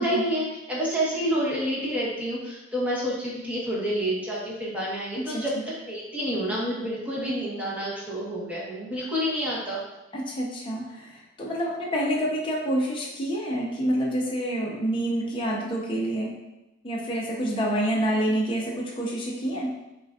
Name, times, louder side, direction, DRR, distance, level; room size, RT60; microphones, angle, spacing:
voice 1, 0.0-5.6 5.9-9.8, equal, 5° right, -6 dB, 1.0 m, -28 dB
voice 2, 10.1-16.3 16.8-19.7, right 1 dB, 25° left, -4 dB, 0.6 m, -27 dB
5.7 x 2.6 x 2.3 m, 0.97 s
head